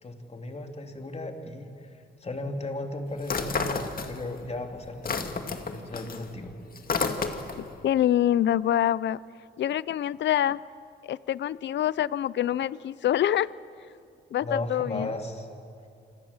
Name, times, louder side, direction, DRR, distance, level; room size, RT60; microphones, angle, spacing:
voice 1, 0.0-1.9 2.2-5.3 5.6-6.5 14.4-15.5, left 2 dB, 35° left, 4 dB, 3.3 m, -35 dB
sound 1, 3.2-4.5 4.8-7.7, left 4 dB, 50° left, 2.2 m, -30 dB
voice 2, 7.8-9.2 9.6-10.6 11.0-13.5 14.3-15.1, left 11 dB, 75° left, 19 dB, 0.5 m, -25 dB
27.0 x 25.5 x 7.4 m, 2.4 s
cardioid pair, 95°, 19 cm